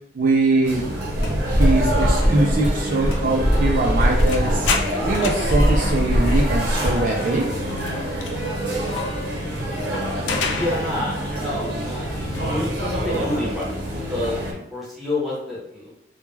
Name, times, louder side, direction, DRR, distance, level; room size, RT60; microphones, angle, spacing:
voice 1, 0.1-0.8 1.5-4.7 5.0-7.5, right 2 dB, 45° right, 0 dB, 0.3 m, -22 dB
sound 1, 0.6-14.5, right 1 dB, 65° right, 0.7 m, -27 dB
sound 2, 1.1-7.1, equal, 50° left, 0.9 m, -21 dB
sound 3, 4.0-11.4 11.7-13.8, left 4 dB, 85° left, 0.3 m, -32 dB
voice 2, 10.5-13.8 14.1-14.3 14.7-15.9, left 1 dB, ahead, -7 dB, 0.7 m, -28 dB
2.2 x 2.1 x 3.1 m, 0.77 s
head